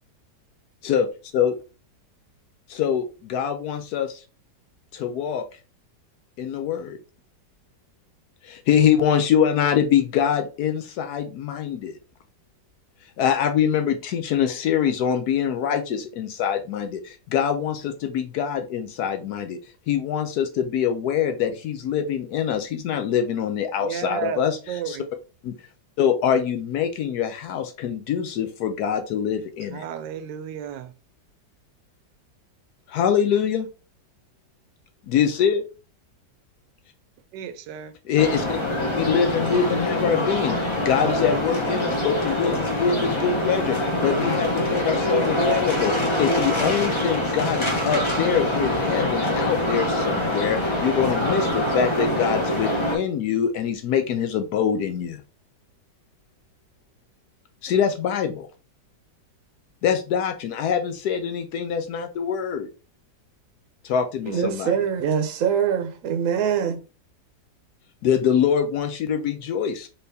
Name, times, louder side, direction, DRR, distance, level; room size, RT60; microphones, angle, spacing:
voice 1, 2.7-4.2 4.9-5.4 6.4-7.0 8.4-12.0 13.2-19.6 19.9-25.0 25.4-25.5 26.0-29.8 32.9-33.7 35.1-35.6 38.0-38.6 39.0-40.6 40.8-55.2 57.6-58.5 59.8-62.7 63.8-64.7 68.0-69.9, left 8 dB, 70° left, 1.0 m, -24 dB
voice 2, 23.8-24.4 24.7-25.1 29.7-30.9 37.3-37.9, right 9 dB, 85° right, 1.3 m, -33 dB
sound 1, 38.2-53.0, left 1 dB, 25° left, 0.6 m, -24 dB
voice 3, 64.3-66.8, right 8 dB, 60° right, 1.0 m, -23 dB
4.3 x 3.5 x 2.6 m
omnidirectional pair, 1.9 m